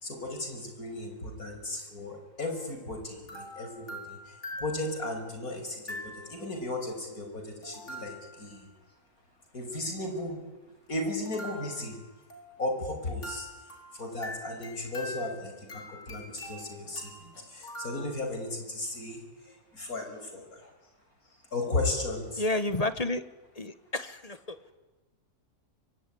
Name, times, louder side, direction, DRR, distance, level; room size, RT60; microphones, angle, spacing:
voice 1, 0.0-4.3 4.6-8.7 9.5-10.4 10.9-12.0 12.6-13.5 13.9-20.7 21.5-22.4, left 2 dB, 70° left, 4 dB, 6.0 m, -35 dB
sound 1, 2.4-2.7 3.3-5.2 5.9-6.5 7.6-8.7 11.3-12.9 13.2-18.1, left 1 dB, 50° left, 5.3 m, -44 dB
voice 2, 22.4-23.2 23.6-24.6, left 2 dB, 25° left, 12 dB, 1.2 m, -30 dB
24.5 x 23.5 x 9.9 m, 1.2 s
omnidirectional pair, 1.6 m